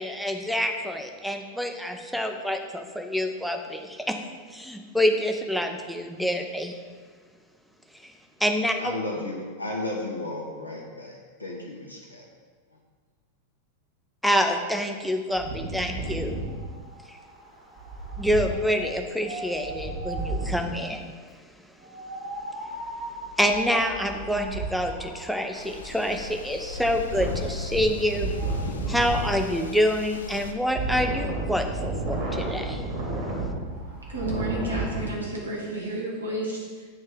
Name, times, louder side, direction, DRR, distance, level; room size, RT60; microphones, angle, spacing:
voice 1, 0.0-4.2 4.5-6.8 8.0-8.1 8.4-8.8 14.2-16.3 17.1-17.2 18.2-21.1 23.4-28.3 28.9-32.8, equal, ahead, 3 dB, 0.6 m, -27 dB
voice 2, 8.8-11.1 11.4-12.2, left 2 dB, 85° left, -1 dB, 0.9 m, -33 dB
Wind, 15.4-20.8 21.8-35.1, right 2 dB, 55° right, 1.9 m, -33 dB
sound 1, 25.5-30.5, left 5 dB, 70° left, 0.4 m, -39 dB
voice 3, 34.1-36.9, right 1 dB, 80° right, -3 dB, 1.6 m, -31 dB
8.7 x 3.2 x 4.9 m, 1.6 s
figure-of-eight pair, 90°, 0 cm